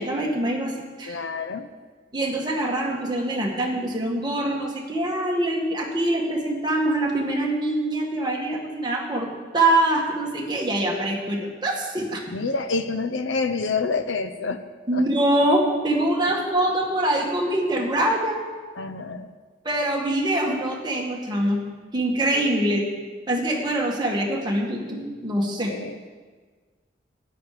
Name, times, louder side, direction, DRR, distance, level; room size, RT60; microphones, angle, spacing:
voice 1, 0.0-1.2 2.1-12.2 14.9-18.4 19.6-21.6 21.9-22.8 23.3-25.7, right 1 dB, 25° right, -1 dB, 1.9 m, -24 dB
voice 2, 1.0-1.7 12.3-14.6 14.9-15.1 18.8-19.4 25.7-26.1, left 4 dB, 85° left, 10 dB, 0.7 m, -28 dB
13.0 x 10.5 x 5.0 m, 1.4 s
head